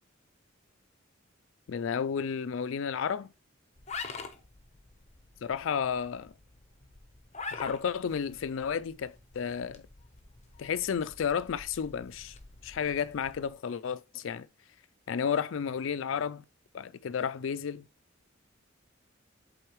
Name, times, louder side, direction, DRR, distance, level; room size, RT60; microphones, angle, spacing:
voice 1, 1.7-3.3 5.4-6.3 7.5-9.8 10.6-12.4 12.6-14.5 15.1-16.4 16.7-17.9, left 7 dB, 75° left, 0.4 m, -32 dB
sound 1, 3.8-13.5, left 4 dB, 35° left, 0.9 m, -46 dB
7.9 x 3.8 x 3.1 m
head